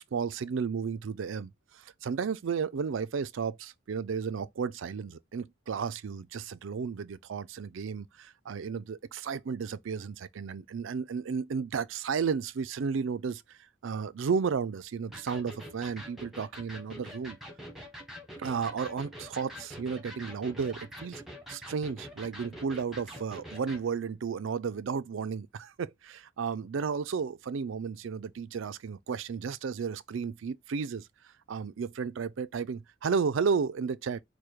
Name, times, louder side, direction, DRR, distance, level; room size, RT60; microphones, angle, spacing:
voice 1, 0.0-17.4 18.4-21.2 21.5-31.1 31.5-34.2, right 6 dB, 75° right, 0.4 m, -33 dB
Electric guitar, 15.1-23.9, equal, ahead, 1.1 m, -45 dB
4.9 x 2.2 x 4.4 m
head